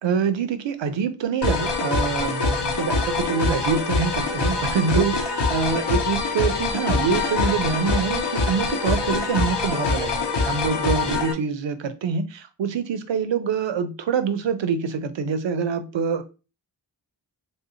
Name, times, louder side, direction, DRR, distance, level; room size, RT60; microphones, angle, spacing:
voice 1, 0.0-16.2, right 6 dB, 85° right, 10 dB, 0.5 m, -25 dB
sound 1, 1.4-11.3, left 3 dB, 70° left, 0.7 m, -24 dB
3.2 x 2.8 x 2.7 m, 0.32 s
wide cardioid pair, 55°, 43 cm